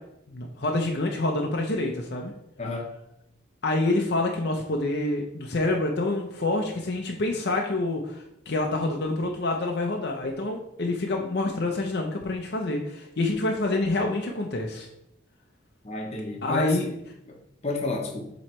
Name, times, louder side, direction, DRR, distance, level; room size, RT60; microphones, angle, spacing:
voice 1, 0.3-2.3 3.6-14.9 16.4-16.8, left 2 dB, 60° left, 1 dB, 0.7 m, -27 dB
voice 2, 2.6-2.9 15.8-16.8 17.3-18.3, left 2 dB, 30° left, 0 dB, 0.9 m, -31 dB
7.4 x 3.2 x 4.4 m, 0.81 s
head